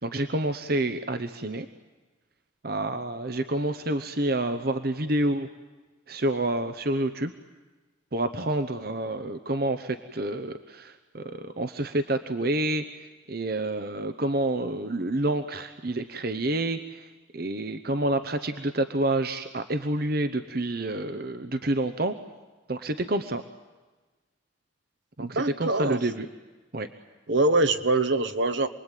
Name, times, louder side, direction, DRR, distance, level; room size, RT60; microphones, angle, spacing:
voice 1, 0.0-1.7 2.6-5.5 6.1-7.3 8.1-22.1 22.7-23.4 25.2-26.3 26.7-26.9, right 1 dB, 50° right, 9 dB, 0.9 m, -28 dB
voice 2, 25.2-26.0 27.3-28.7, right 2 dB, 65° right, 10 dB, 1.3 m, -24 dB
28.0 x 21.0 x 9.2 m, 1.3 s
head